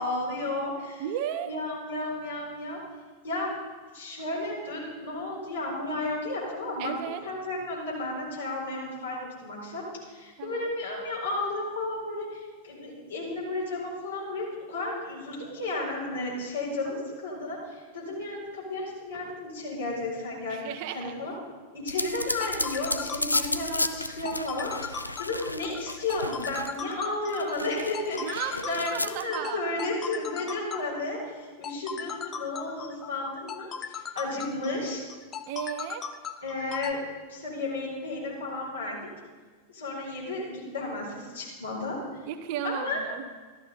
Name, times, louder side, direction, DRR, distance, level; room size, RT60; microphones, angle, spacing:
voice 1, 0.0-1.0 1.4-2.8 3.2-3.5 3.9-20.6 20.9-21.3 21.7-35.0 36.4-37.0 37.3-39.1 39.7-42.0 42.6-43.0, left 2 dB, 70° left, -5 dB, 4.5 m, -33 dB
voice 2, 1.0-1.5 6.8-7.2 10.4-10.7 20.5-21.1 28.2-29.6 35.5-36.0 42.3-43.3, right 9 dB, 45° right, 7 dB, 0.9 m, -34 dB
sound 1, 21.9-26.9 27.3-29.3, left 2 dB, 85° left, 0.4 m, -33 dB
sound 2, 22.2-36.9, left 7 dB, 25° left, 0.7 m, -38 dB
13.5 x 12.5 x 4.1 m, 1.4 s
figure-of-eight pair, 90°, 0 cm